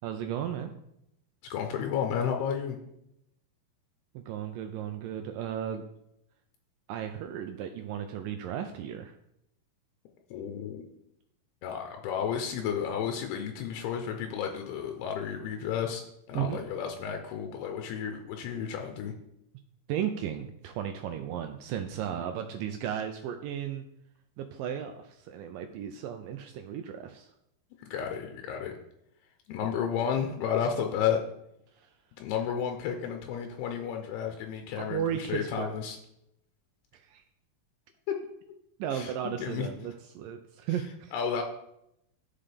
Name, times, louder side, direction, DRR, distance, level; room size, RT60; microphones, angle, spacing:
voice 1, 0.0-0.7 4.2-5.8 6.9-9.2 16.3-16.6 19.9-23.9 24.4-27.3 31.8-31.9 34.8-35.7 36.9-37.2 38.8-41.1, right 9 dB, 85° right, 6 dB, 1.9 m, -35 dB
voice 2, 1.5-2.8 10.3-10.9 11.6-16.0 16.3-19.1 27.9-28.7 29.5-31.2 32.2-36.0 38.1-38.2 38.9-39.1 39.4-39.7 41.1-41.4, left 8 dB, 85° left, 4 dB, 2.8 m, -32 dB
12.0 x 5.6 x 3.4 m, 0.81 s
omnidirectional pair, 4.5 m